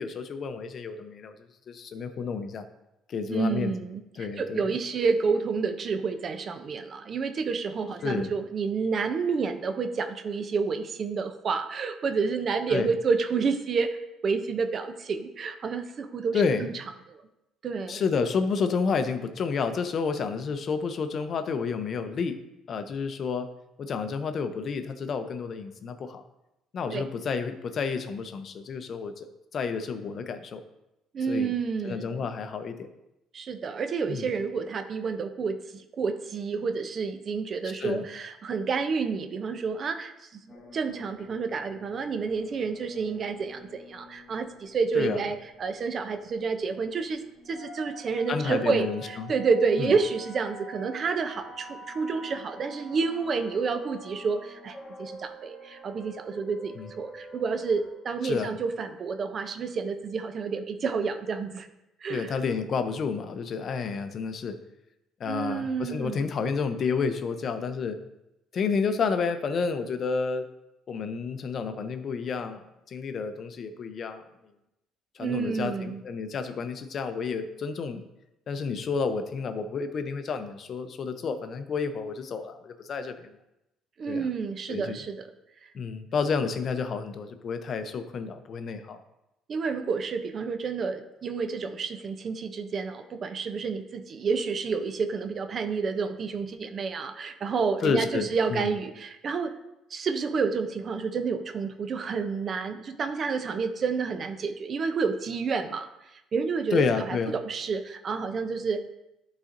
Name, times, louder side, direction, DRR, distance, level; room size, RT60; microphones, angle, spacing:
voice 1, 0.0-1.4 1.7-2.6 3.1-3.7 4.2-4.7 8.0-8.3 12.7-12.9 16.3-16.7 17.9-22.4 22.7-23.5 23.8-26.2 26.7-29.3 29.5-30.6 31.3-31.5 31.8-32.9 34.1-34.3 37.8-38.1 44.9-45.3 48.3-49.3 49.8-49.9 56.8-56.9 58.2-58.5 62.1-64.6 65.2-68.0 68.5-70.4 70.9-74.2 75.2-78.0 78.5-83.3 84.1-84.3 84.7-85.0 85.7-89.0 97.8-98.7 106.7-107.3, left 5 dB, 40° left, 9 dB, 0.6 m, -30 dB
voice 2, 3.3-14.0 14.2-16.8 17.1-17.2 17.6-18.0 26.9-27.1 31.1-32.2 33.3-61.7 62.0-62.3 65.3-66.3 75.2-76.0 84.0-85.3 85.6-85.7 89.5-99.5 99.9-105.9 106.3-108.8, right 5 dB, 35° right, 9 dB, 0.5 m, -29 dB
sound 1, 40.5-57.9, equal, 15° left, 1.0 m, -47 dB
11.5 x 4.0 x 2.6 m, 0.90 s
cardioid pair, 145°, 0 cm